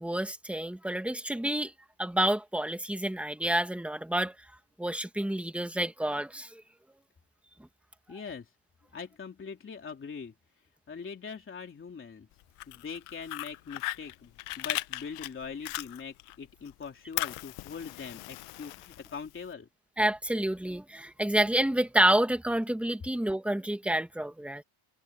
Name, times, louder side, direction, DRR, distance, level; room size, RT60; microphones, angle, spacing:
voice 1, 0.0-1.7 2.0-4.3 4.8-6.6 20.0-24.6, right 1 dB, ahead, 1.5 m, -28 dB
voice 2, 8.1-8.5 8.9-10.3 10.9-12.3 12.7-19.7, left 6 dB, 25° left, 3.1 m, -42 dB
Fire, 12.4-16.3 16.7-19.5, left 18 dB, 90° left, 1.0 m, -37 dB
cardioid pair, 165°, 50 cm